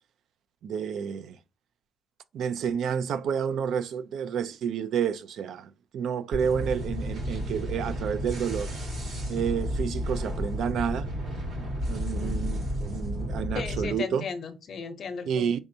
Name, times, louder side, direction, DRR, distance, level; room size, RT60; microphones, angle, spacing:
voice 1, 0.6-1.4 2.3-8.7 9.3-11.1 11.9-14.2 15.3-15.6, right 7 dB, 85° right, 0.4 m, -30 dB
sound 1, 6.3-13.9, equal, 70° right, 2.1 m, -32 dB
voice 2, 12.1-12.4 13.5-15.5, left 5 dB, 50° left, 0.7 m, -36 dB
5.3 x 3.4 x 2.6 m
wide cardioid pair, 165°, 0 cm